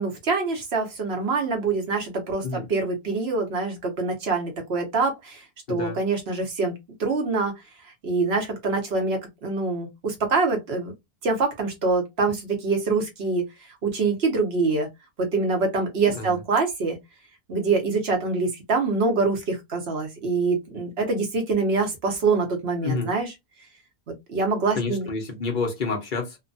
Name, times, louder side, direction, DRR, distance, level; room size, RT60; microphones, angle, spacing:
voice 1, 0.0-7.5 8.0-10.9 11.2-13.4 13.8-14.9 15.2-17.0 17.5-23.3 24.1-25.1, right 4 dB, 85° right, 1.2 m, -25 dB
voice 2, 5.7-6.0 16.1-16.4 22.8-23.1 24.8-26.4, left 4 dB, 55° left, 0.9 m, -28 dB
2.9 x 2.2 x 2.6 m
omnidirectional pair, 1.0 m